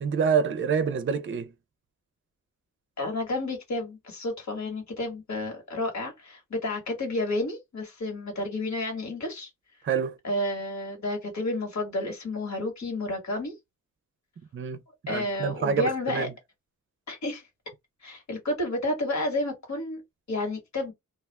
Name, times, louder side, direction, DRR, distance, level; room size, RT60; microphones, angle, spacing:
voice 1, 0.0-1.5 9.8-10.2 14.5-14.8 15.1-16.3, right 6 dB, 40° right, 0.5 m, -27 dB
voice 2, 3.0-9.5 10.2-13.5 15.1-16.3 17.1-17.5 18.0-20.0 20.3-20.9, left 2 dB, 55° left, 1.5 m, -31 dB
2.4 x 2.3 x 3.2 m
cardioid pair, 80°, 33 cm